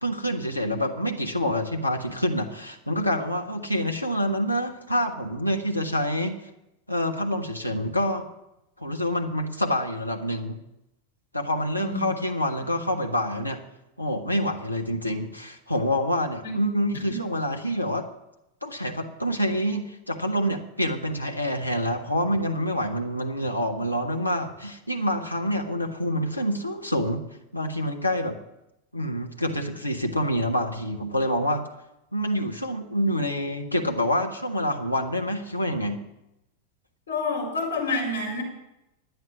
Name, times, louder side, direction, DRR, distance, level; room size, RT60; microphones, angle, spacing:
voice 1, 0.0-6.4 6.9-8.3 8.8-10.6 11.3-13.6 14.0-18.1 18.6-27.2 27.5-28.4 28.9-31.6 32.1-36.0, equal, 85° left, 3 dB, 1.2 m, -27 dB
voice 2, 11.8-12.1 16.4-16.6 16.9-17.2 37.1-38.4, left 3 dB, 70° left, -1 dB, 4.1 m, -28 dB
10.5 x 9.5 x 7.2 m, 0.90 s
figure-of-eight pair, 90°, 0 cm